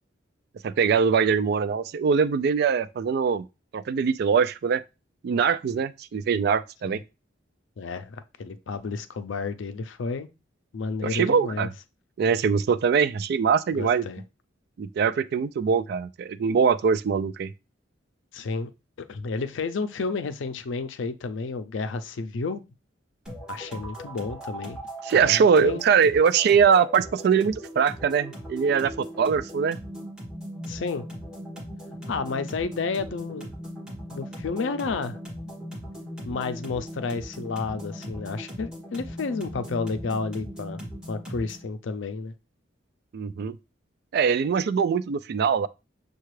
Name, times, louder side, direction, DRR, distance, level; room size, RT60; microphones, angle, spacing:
voice 1, 0.6-3.4 3.7-4.8 5.2-7.0 11.0-11.7 12.2-14.1 14.8-17.5 25.0-29.8 43.1-43.6 44.1-45.7, right 6 dB, 55° right, 0.3 m, -22 dB
voice 2, 7.8-10.3 10.7-11.7 13.7-14.2 18.3-18.7 19.0-22.6 23.5-24.8 25.1-25.8 30.7-31.0 32.1-33.5 34.1-35.2 36.2-40.8 41.1-42.3, left 4 dB, 80° left, 0.4 m, -31 dB
sound 1, 23.3-41.7, equal, 5° right, 1.3 m, -39 dB
6.6 x 2.3 x 3.1 m
head